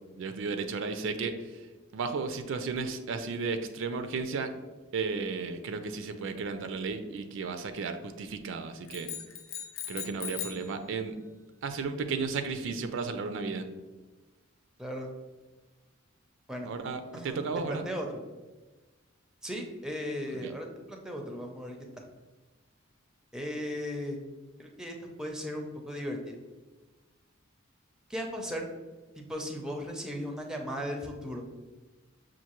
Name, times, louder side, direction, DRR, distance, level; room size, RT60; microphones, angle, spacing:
voice 1, 0.2-1.7 1.9-4.5 4.9-9.1 9.9-11.2 11.6-13.7 16.7-17.9 20.4-20.5, right 4 dB, 65° right, 8 dB, 0.3 m, -34 dB
sound 1, 8.9-10.7, left 8 dB, 65° left, 0.5 m, -39 dB
voice 2, 17.7-18.2 19.4-22.0 23.3-24.2 24.6-26.4 28.1-28.6 29.2-31.4, equal, 5° right, 2 dB, 0.4 m, -37 dB
5.7 x 2.5 x 2.9 m, 1.2 s
head